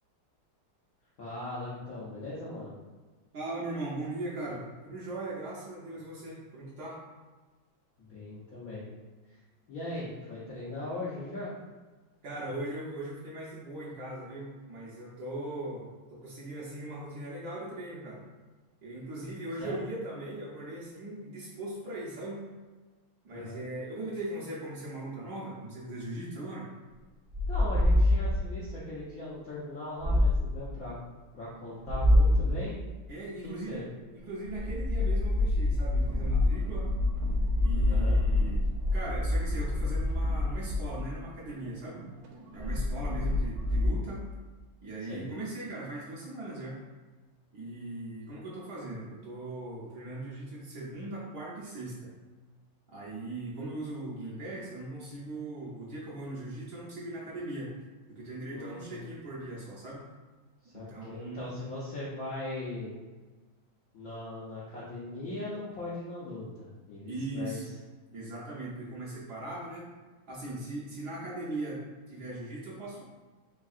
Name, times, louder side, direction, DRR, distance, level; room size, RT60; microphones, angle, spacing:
voice 1, 1.2-2.7 8.0-8.9 9.7-11.5 19.6-19.8 23.3-23.6 27.5-31.0 31.3-32.7 33.4-33.9 37.9-38.2 43.1-43.4 45.0-45.2 58.5-59.0 60.6-62.9 63.9-67.6, left 2 dB, 70° left, -8 dB, 0.8 m, -39 dB
voice 2, 3.3-7.0 12.2-18.3 18.8-22.4 23.2-26.7 33.1-33.8 34.1-36.9 37.6-38.6 38.9-42.0 42.5-44.2 44.8-46.8 47.5-52.1 52.9-57.8 58.1-60.0 60.7-61.5 67.0-67.7 68.1-69.9 70.3-73.0, right 2 dB, 65° right, -6 dB, 1.1 m, -39 dB
sound 1, 27.3-28.6 30.0-30.6 31.9-32.6 34.5-41.2 42.6-43.9, left 1 dB, 35° right, 0.7 m, -26 dB
sound 2, 35.9-39.8 40.1-44.1, right 4 dB, 85° right, 1.4 m, -47 dB
3.6 x 3.4 x 2.4 m, 1.3 s
omnidirectional pair, 2.3 m